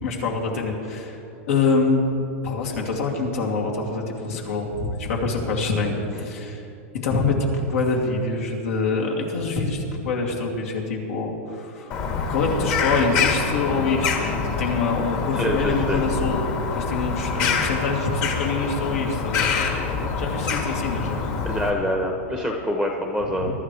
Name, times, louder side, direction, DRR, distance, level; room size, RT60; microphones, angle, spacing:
voice 1, 0.0-1.2 1.5-2.0 2.4-6.6 7.0-11.9 12.3-19.7 20.2-21.2 23.4-23.5, left 3 dB, 80° left, -1 dB, 2.7 m, -25 dB
Bird vocalization bird call bird song, 11.9-21.7, left 5 dB, 40° left, 1.6 m, -25 dB
voice 2, 15.3-16.0 19.8-20.1 21.4-23.5, left 1 dB, 5° left, 1 dB, 0.8 m, -26 dB
23.0 x 12.5 x 3.3 m, 2.7 s
supercardioid pair, 160°, 7 cm